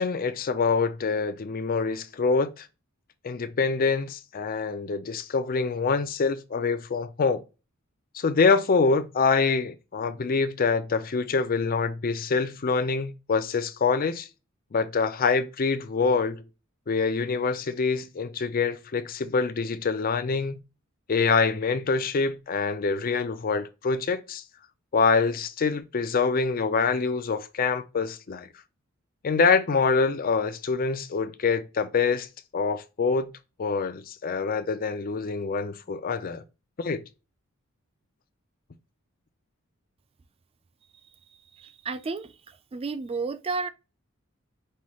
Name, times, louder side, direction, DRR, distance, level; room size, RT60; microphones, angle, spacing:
voice 1, 0.0-2.7 3.2-7.4 8.1-14.3 14.7-16.4 16.9-20.6 21.1-24.4 24.9-28.5 29.2-32.3 32.5-33.3 33.6-36.4 36.8-37.0, left 4 dB, 45° left, 0.5 m, -25 dB
voice 2, 41.6-43.7, right 4 dB, 25° right, 0.3 m, -32 dB
5.6 x 3.1 x 2.3 m
head